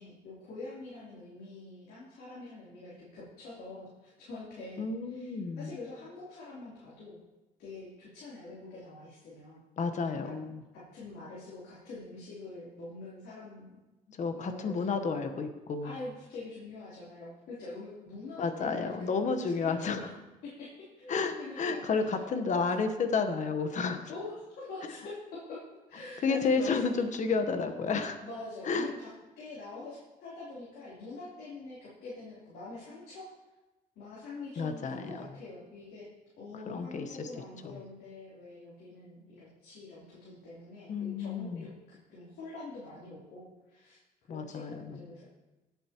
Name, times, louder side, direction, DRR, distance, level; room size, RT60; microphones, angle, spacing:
voice 1, 0.0-7.2 7.6-9.6 10.2-10.3 10.7-13.8 14.3-15.0 15.8-20.1 20.4-22.2 24.1-25.6 25.9-27.1 28.2-29.1 29.4-33.3 34.0-36.1 36.4-44.0 44.3-45.3, left 2 dB, 70° left, -9 dB, 3.6 m, -45 dB
voice 2, 4.8-5.7 9.8-10.6 14.2-16.0 18.4-20.1 21.1-24.0 26.2-28.2 28.7-28.9 34.6-35.2 36.6-37.3 37.6-37.8 40.9-41.6 44.3-45.1, left 4 dB, 45° left, 8 dB, 1.2 m, -31 dB
16.5 x 8.1 x 3.0 m, 1.1 s
cardioid pair, 110°, 17 cm